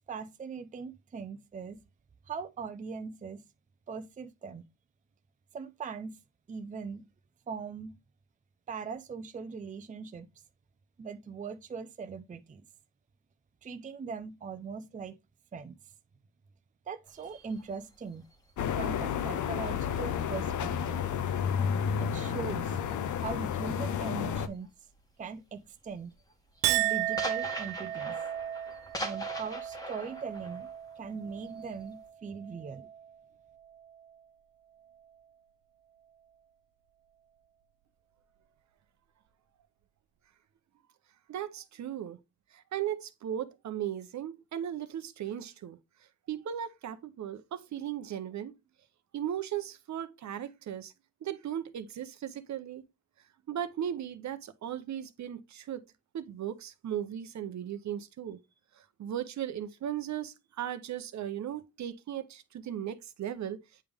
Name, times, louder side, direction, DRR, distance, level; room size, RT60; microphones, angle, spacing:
voice 1, 0.1-1.8 2.3-3.4 3.9-4.6 5.5-6.2 6.5-7.1 7.5-7.9 8.7-10.3 11.0-12.6 13.6-15.2 15.5-15.8 16.9-18.2 18.8-21.1 22.0-22.8 23.2-24.7 25.2-26.1 26.7-28.2 29.0-30.7 31.0-32.9, right 5 dB, 25° right, 0.5 m, -40 dB
sound 1, 17.1-20.9 21.3-24.7 25.0-25.3 25.7-32.1, left 1 dB, 10° left, 1.4 m, -44 dB
sound 2, 18.6-24.5, left 7 dB, 60° left, 0.7 m, -31 dB
Chink clink, 26.6-33.2 33.6-34.2, right 13 dB, 90° right, 0.5 m, -35 dB
voice 2, 41.3-42.2 42.5-45.8 46.3-48.5 49.1-50.9 51.2-52.8 53.5-55.8 56.1-58.4 59.0-63.6, right 10 dB, 55° right, 0.7 m, -37 dB
8.5 x 3.4 x 3.5 m
cardioid pair, 90°, 33 cm